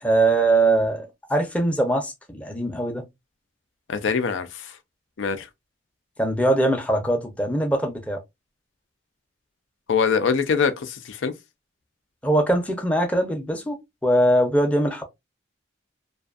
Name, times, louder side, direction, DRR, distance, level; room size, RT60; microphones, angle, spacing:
voice 1, 0.0-3.1 6.2-8.2 12.2-13.8 14.0-15.0, right 1 dB, 5° left, 0.5 m, -22 dB
voice 2, 3.9-4.8 5.2-5.5 9.9-11.3, left 6 dB, 90° left, 0.4 m, -23 dB
2.5 x 2.3 x 2.4 m
head